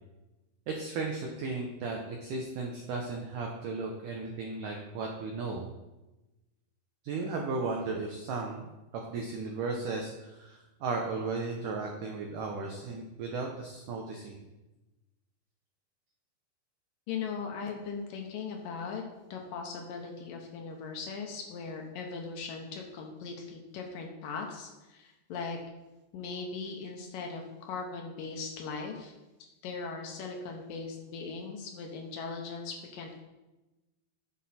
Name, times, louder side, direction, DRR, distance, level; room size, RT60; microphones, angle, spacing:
voice 1, 0.7-5.6 7.0-14.4, right 3 dB, 90° right, 1 dB, 1.8 m, -35 dB
voice 2, 17.1-19.0 19.3-25.6 26.1-33.2, left 5 dB, 70° left, 2 dB, 2.2 m, -39 dB
11.5 x 7.6 x 4.3 m, 1.1 s
omnidirectional pair, 5.1 m